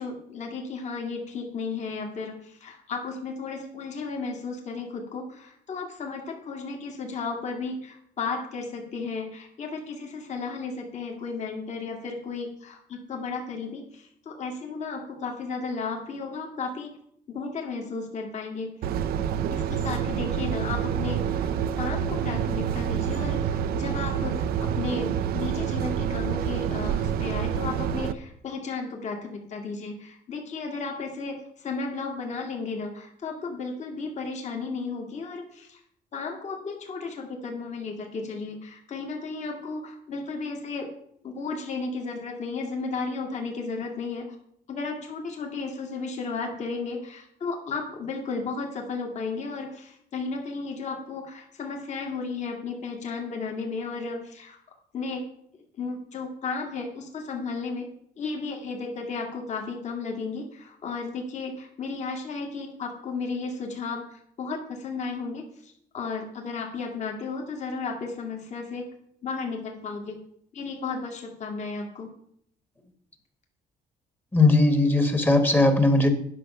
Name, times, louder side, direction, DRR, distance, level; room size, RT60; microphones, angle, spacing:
voice 1, 0.0-16.9 17.3-18.8 19.5-21.5 21.8-35.8 36.1-40.9 41.2-44.3 44.7-54.6 54.9-55.3 55.8-57.9 58.2-64.0 64.4-68.9 69.2-70.2 70.5-72.1, left 4 dB, 45° left, 2 dB, 2.0 m, -34 dB
sound 1, 18.8-28.1, right 8 dB, 75° right, 0.6 m, -27 dB
voice 2, 74.3-76.1, left 2 dB, 10° left, 7 dB, 1.3 m, -19 dB
9.9 x 6.1 x 5.5 m, 0.69 s
cardioid pair, 115°, 16 cm